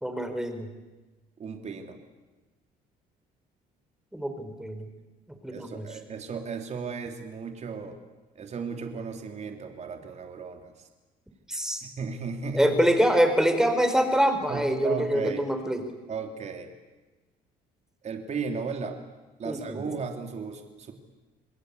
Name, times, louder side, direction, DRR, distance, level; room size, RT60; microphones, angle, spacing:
voice 1, 0.0-0.7 4.1-4.8 5.4-5.8 11.5-11.8 12.5-15.8 19.4-19.9, equal, 5° right, 7 dB, 4.2 m, -25 dB
voice 2, 1.4-2.0 5.5-8.0 8.3-10.9 11.8-12.9 14.5-15.4 16.1-16.7 18.0-19.0 19.4-20.9, right 5 dB, 40° right, 5 dB, 3.2 m, -35 dB
28.0 x 20.5 x 8.4 m, 1.2 s
cardioid pair, 110°, 17 cm